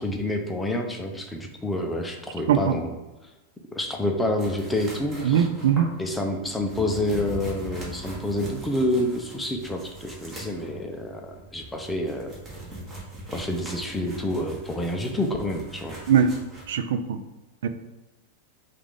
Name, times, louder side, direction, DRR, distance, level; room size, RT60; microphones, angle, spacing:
voice 1, 0.0-3.0 3.7-5.5 6.0-12.3 13.3-16.0, left 1 dB, 5° left, 3 dB, 0.5 m, -28 dB
sound 1, 4.4-16.7, right 1 dB, 15° right, 1.4 m, -41 dB
voice 2, 5.2-5.9 16.1-16.3 16.7-17.2 17.6-17.7, right 8 dB, 80° right, 10 dB, 0.3 m, -21 dB
5.0 x 2.5 x 3.6 m, 1.1 s
supercardioid pair, 140°, 0 cm